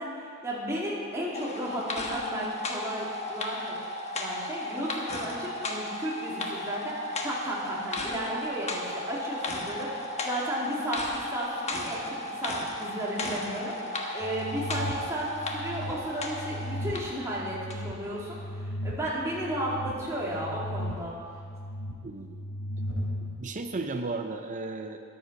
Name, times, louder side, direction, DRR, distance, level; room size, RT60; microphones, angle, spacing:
voice 1, 0.0-3.9 4.1-21.1, right 1 dB, 15° right, -6 dB, 2.5 m, -34 dB
sound 1, 1.3-17.2 17.7-17.8, left 1 dB, 30° left, 1.2 m, -35 dB
sound 2, 14.2-23.4, equal, 75° left, 2.7 m, -37 dB
voice 2, 22.0-22.4 23.4-25.0, right 3 dB, 35° right, 6 dB, 0.5 m, -34 dB
13.5 x 10.0 x 5.3 m, 2.3 s
head